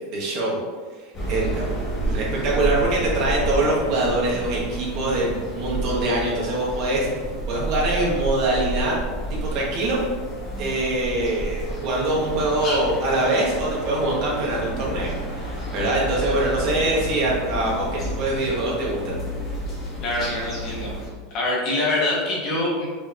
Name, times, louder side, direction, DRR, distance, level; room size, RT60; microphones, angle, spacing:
voice 1, 0.1-0.6 1.3-1.7 2.0-7.1 7.5-8.9 9.3-10.0 10.6-15.1 15.4-19.2, right 2 dB, 45° right, -4 dB, 1.3 m, -23 dB
sound 1, 1.1-21.1, right 1 dB, 25° left, 1.3 m, -30 dB
voice 2, 20.0-20.9 21.3-22.9, left 2 dB, 45° left, -3 dB, 1.2 m, -24 dB
5.5 x 2.9 x 2.6 m, 1.5 s
supercardioid pair, 145°, 0 cm